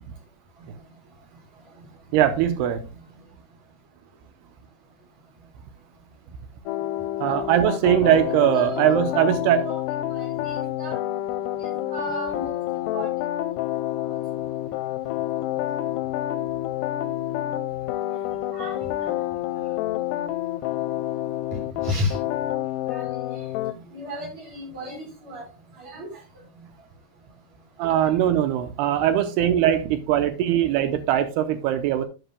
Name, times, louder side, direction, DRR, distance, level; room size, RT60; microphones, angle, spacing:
voice 1, 2.1-2.8 7.2-9.7 27.8-32.1, right 10 dB, 80° right, 9 dB, 2.7 m, -21 dB
sound 1, 6.7-23.7, left 13 dB, 85° left, 2.6 m, -28 dB
voice 2, 7.8-8.1 8.5-9.8 10.1-11.0 11.6-12.5 12.8-13.1 14.0-14.1 18.5-18.9 21.8-22.2 22.9-23.1 23.4-23.5 23.9-25.4 25.7-26.1, left 1 dB, 40° right, -2 dB, 5.8 m, -34 dB
12.0 x 8.0 x 2.2 m, 0.30 s
omnidirectional pair, 4.8 m